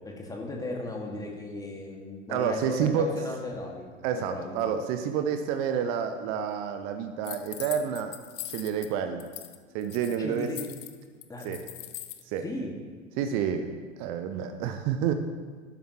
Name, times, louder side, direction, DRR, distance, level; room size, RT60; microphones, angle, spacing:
voice 1, 0.0-3.9 4.3-4.6 10.2-10.6 11.3-11.4 12.4-12.7, left 2 dB, 10° left, 0 dB, 1.9 m, -36 dB
voice 2, 2.3-3.0 4.0-8.1 8.5-9.3 9.7-10.5 11.4-11.6 12.3-12.4 13.2-13.7 14.0-15.1, right 8 dB, 15° right, 8 dB, 0.3 m, -29 dB
sound 1, 7.2-8.9 9.2-9.6 9.8-12.2, left 13 dB, 25° left, 0.7 m, -41 dB
12.5 x 12.0 x 3.0 m, 1.5 s
figure-of-eight pair, 90°, 38 cm